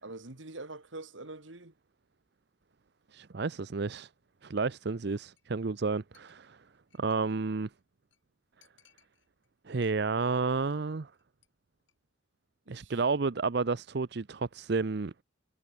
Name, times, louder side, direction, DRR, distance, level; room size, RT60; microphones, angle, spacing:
voice 1, 0.0-1.7 12.7-12.9, right 2 dB, 75° right, 2.1 m, -44 dB
voice 2, 3.1-4.1 4.4-6.6 7.0-7.7 9.7-11.1 12.7-15.1, right 4 dB, 55° right, 0.6 m, -31 dB
Chink clink, 5.4-5.5 5.8-5.9 6.1-7.5 7.8-7.9 8.1-8.2 8.6-9.5 9.8-10.3 10.6-10.9 11.1-11.5 11.8-11.9, left 11 dB, 70° left, 7.9 m, -66 dB
head